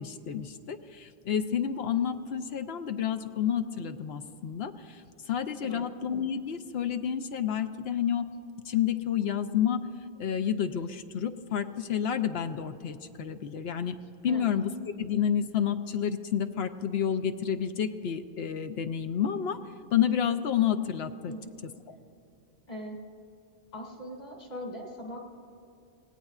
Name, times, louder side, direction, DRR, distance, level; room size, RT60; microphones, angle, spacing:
voice 1, 0.0-5.0 5.3-8.3 8.7-9.8 10.2-14.0 14.2-14.7 15.0-19.6 19.9-21.3 21.9-22.0, left 8 dB, 80° left, 8 dB, 0.9 m, -29 dB
voice 2, 22.7-23.0 23.7-25.2, equal, 55° left, -1 dB, 2.8 m, -40 dB
26.0 x 17.5 x 2.4 m, 2.6 s
omnidirectional pair, 1.0 m